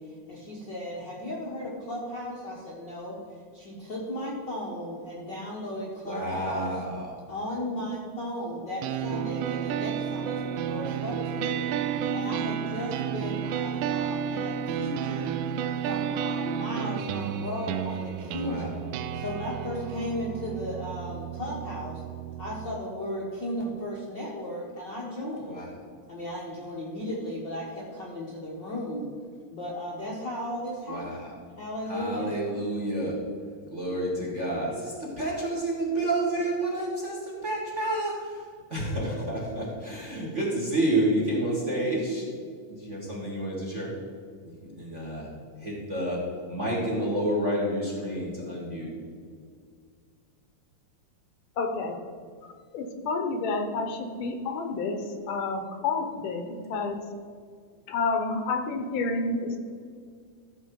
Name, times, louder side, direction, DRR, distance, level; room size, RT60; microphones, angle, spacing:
voice 1, 0.0-6.7 7.3-15.4 15.8-18.8 19.1-22.0 22.4-25.6 26.1-29.1 29.5-31.2 31.6-32.3, left 1 dB, 45° left, -4 dB, 1.5 m, -35 dB
voice 2, 6.0-7.1 18.4-18.7 25.5-25.7 30.9-31.3 31.9-33.2 33.7-42.3 42.7-43.9 44.4-45.3 45.6-48.9, right 1 dB, 25° right, -3 dB, 1.9 m, -29 dB
sound 1, 8.8-22.8, right 8 dB, 85° right, 2.1 m, -31 dB
voice 3, 51.6-52.0 52.7-57.0 57.9-59.6, left 3 dB, 80° left, 5 dB, 2.6 m, -29 dB
14.0 x 7.1 x 4.7 m, 2.1 s
omnidirectional pair, 3.7 m